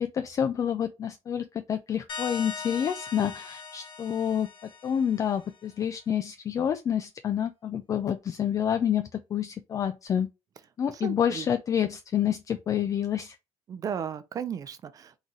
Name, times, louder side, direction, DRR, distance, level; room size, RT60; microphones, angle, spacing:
voice 1, 0.0-4.5 4.8-10.3 10.8-13.4, left 9 dB, 30° left, 0.3 m, -28 dB
sound 1, 2.1-5.5, left 5 dB, 50° left, 1.4 m, -40 dB
voice 2, 11.0-11.4 13.7-15.2, right 8 dB, 35° right, 0.5 m, -35 dB
3.9 x 3.9 x 3.0 m
cardioid pair, 170°, 11 cm